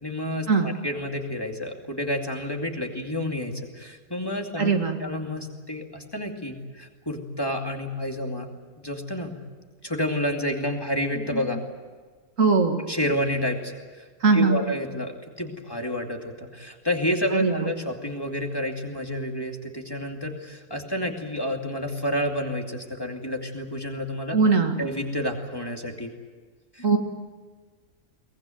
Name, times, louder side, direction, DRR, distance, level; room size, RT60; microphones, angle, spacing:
voice 1, 0.0-4.7 5.0-8.5 8.8-9.3 9.8-11.6 12.9-14.0 14.3-24.4 24.8-26.1 26.7-26.9, equal, 15° left, 2 dB, 2.5 m, -29 dB
voice 2, 4.6-5.0 12.4-12.8 14.2-14.6 17.3-17.5 24.3-24.8 26.8-27.0, right 4 dB, 65° right, 4 dB, 2.3 m, -20 dB
23.5 x 19.5 x 9.2 m, 1.5 s
omnidirectional pair, 1.5 m